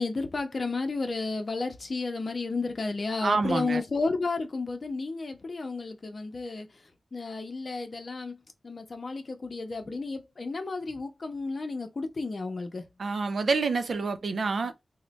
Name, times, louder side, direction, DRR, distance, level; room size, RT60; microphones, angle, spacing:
voice 1, 0.0-6.8 7.1-12.8, left 3 dB, 55° left, 0.7 m, -32 dB
voice 2, 3.2-3.8 13.0-14.7, right 4 dB, 75° right, 0.5 m, -27 dB
3.1 x 2.2 x 3.9 m
wide cardioid pair, 100°, 0 cm